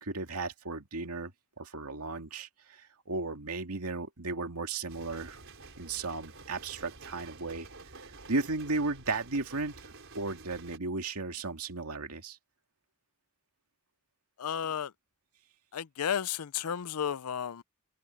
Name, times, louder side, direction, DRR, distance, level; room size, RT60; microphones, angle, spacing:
voice 1, 0.0-1.3 1.6-2.5 3.1-5.4 5.8-7.7 8.3-9.8 10.1-12.4, right 3 dB, 85° right, 2.2 m, -35 dB
sound 1, 4.9-10.8, right 3 dB, 60° right, 5.1 m, -50 dB
voice 2, 14.4-14.9 15.7-17.6, left 8 dB, 85° left, 0.5 m, -33 dB
head